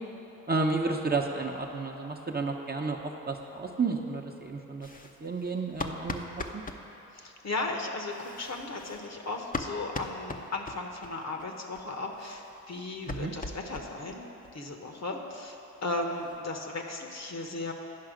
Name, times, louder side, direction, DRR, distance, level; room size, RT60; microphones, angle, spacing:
voice 1, 0.5-4.9 5.2-6.6 13.1-13.3, right 3 dB, 25° right, 1 dB, 0.9 m, -31 dB
sound 1, 4.8-6.8 8.0-11.1 11.4-11.5 11.7-11.8 12.1-14.2 14.4-14.5 14.9-15.0 15.3-15.4 15.7-16.5, left 3 dB, 20° left, 0.7 m, -40 dB
voice 2, 7.1-17.7, left 2 dB, 45° left, 3 dB, 1.1 m, -36 dB
9.6 x 5.6 x 5.1 m, 3.0 s
supercardioid pair, 40°, 38 cm